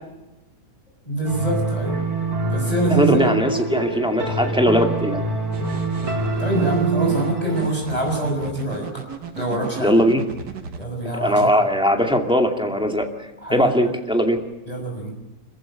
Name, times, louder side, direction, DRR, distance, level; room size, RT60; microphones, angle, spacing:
voice 1, 1.1-2.0 2.5-3.3 6.4-8.9 9.4-9.9 10.8-11.5 13.4-13.7 14.6-15.1, right 2 dB, 20° left, -1 dB, 5.9 m, -25 dB
sound 1, 1.2-7.7, right 3 dB, 60° right, 4.2 m, -25 dB
voice 2, 2.9-5.2 9.8-10.2 11.1-14.4, equal, 5° right, 3 dB, 2.3 m, -20 dB
sound 2, 5.5-10.8, right 6 dB, 80° right, 1.9 m, -35 dB
26.5 x 15.0 x 9.9 m, 1.0 s
omnidirectional pair, 1.8 m